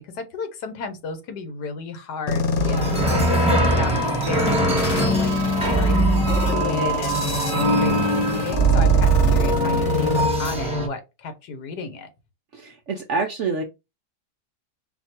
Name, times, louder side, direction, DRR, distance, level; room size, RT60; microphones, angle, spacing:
voice 1, 0.0-5.3 5.6-6.0 6.5-7.4 7.8-12.1, left 4 dB, 80° left, 1.5 m, -33 dB
sound 1, 2.3-10.3, left 4 dB, 55° left, 1.0 m, -28 dB
sound 2, 2.6-10.9, right 2 dB, 5° right, 1.1 m, -20 dB
voice 2, 12.5-13.6, right 4 dB, 70° right, 0.7 m, -26 dB
4.3 x 2.3 x 4.2 m
omnidirectional pair, 1.8 m